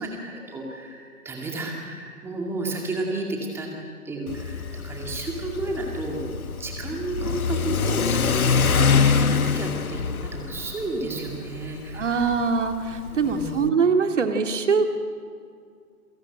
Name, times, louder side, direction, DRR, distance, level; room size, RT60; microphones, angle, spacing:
voice 1, 0.0-3.7 4.0-6.3 6.6-12.3 13.1-13.6, right 2 dB, 5° right, 0 dB, 2.3 m, -32 dB
Car / Accelerating revving vroom, 4.3-13.7, left 6 dB, 65° left, 1.2 m, -25 dB
voice 2, 11.9-14.9, right 5 dB, 50° right, 6 dB, 2.3 m, -23 dB
27.5 x 17.0 x 9.1 m, 2.2 s
figure-of-eight pair, 145°, 46 cm